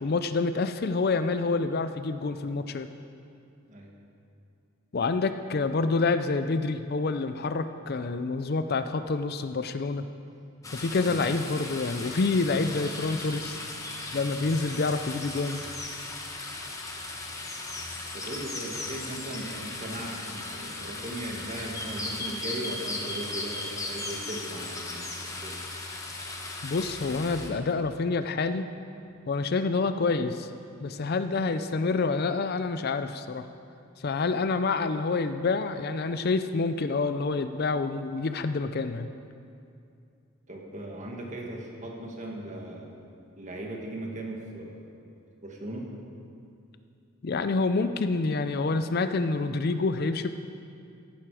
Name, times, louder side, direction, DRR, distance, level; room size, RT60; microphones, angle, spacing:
voice 1, 0.0-2.9 4.9-10.0 10.7-13.6 14.1-15.6 26.6-28.6 29.3-30.5 30.8-33.5 34.0-39.1 47.2-50.3, left 3 dB, 45° left, 10 dB, 0.4 m, -27 dB
sound 1, 10.6-27.5, left 2 dB, 15° left, 1.1 m, -37 dB
voice 2, 18.1-25.6 40.5-42.9 43.4-44.8 45.4-45.9, right 1 dB, 35° right, 0 dB, 1.8 m, -38 dB
15.0 x 11.5 x 4.9 m, 2.5 s
head